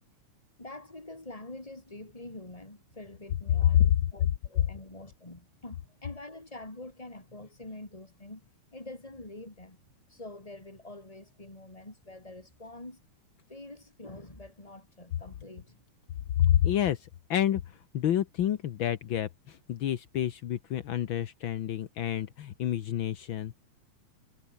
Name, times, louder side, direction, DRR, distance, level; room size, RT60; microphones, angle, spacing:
voice 1, 0.6-8.4 8.7-13.0 13.5-15.8, left 2 dB, 10° left, 3.5 m, -46 dB
voice 2, 16.4-23.5, left 11 dB, 70° left, 1.2 m, -28 dB
omnidirectional pair, 3.6 m